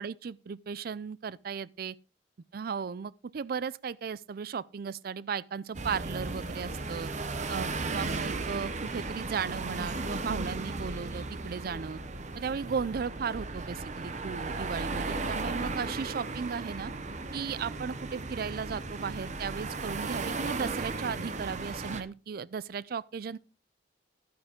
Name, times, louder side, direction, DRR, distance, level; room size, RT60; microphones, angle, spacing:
voice 1, 0.0-1.9 2.5-7.1 7.5-12.0 12.4-16.9 17.3-23.4, right 6 dB, 60° right, 0.4 m, -36 dB
sound 1, 5.7-22.0, right 3 dB, 45° right, 0.9 m, -35 dB
11.0 x 9.4 x 3.6 m
head